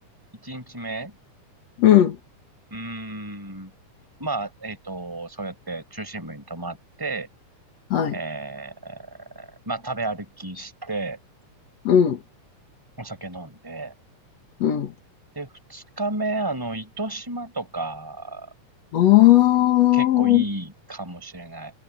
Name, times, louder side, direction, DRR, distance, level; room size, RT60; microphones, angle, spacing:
voice 1, 0.4-1.1 2.7-3.7 4.2-7.3 8.1-11.2 13.0-13.9 15.3-18.5 19.9-21.7, right 2 dB, 5° right, 5.5 m, -32 dB
voice 2, 1.8-2.2 7.9-8.2 11.8-12.2 14.6-14.9 18.9-20.4, left 13 dB, 60° left, 2.5 m, -16 dB
omnidirectional pair, 3.6 m